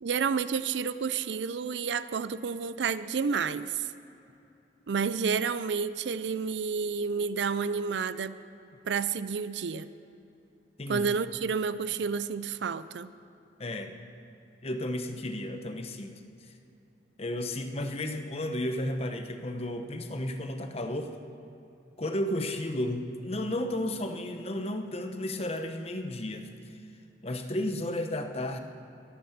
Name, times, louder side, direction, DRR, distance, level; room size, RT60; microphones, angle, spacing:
voice 1, 0.0-3.9 4.9-8.3 8.8-9.9 10.9-13.1, right 5 dB, 70° right, 14 dB, 0.5 m, -30 dB
voice 2, 13.6-13.9 14.6-16.2 17.2-21.1 22.0-26.5 27.2-28.6, left 1 dB, 35° left, 6 dB, 0.9 m, -33 dB
22.5 x 8.5 x 5.9 m, 2.8 s
head